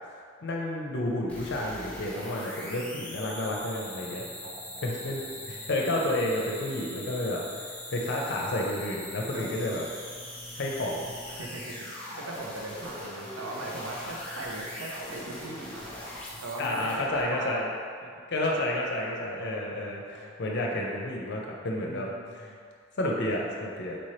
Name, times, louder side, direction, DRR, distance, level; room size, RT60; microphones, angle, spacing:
voice 1, 0.4-4.2 4.8-7.4 7.9-9.8 10.6-11.1 16.6-17.7 18.3-22.1 22.3-22.5 23.0-24.0, left 1 dB, 55° left, -1 dB, 0.6 m, -30 dB
sound 1, 1.3-17.2, left 1 dB, 5° left, 0.7 m, -41 dB
voice 2, 4.4-5.7 9.3-9.5 11.3-15.9 16.4-17.6 18.0-18.2 19.4-20.8 21.8-22.6, right 2 dB, 70° right, -2 dB, 0.6 m, -40 dB
4.3 x 2.9 x 3.1 m, 2.1 s
head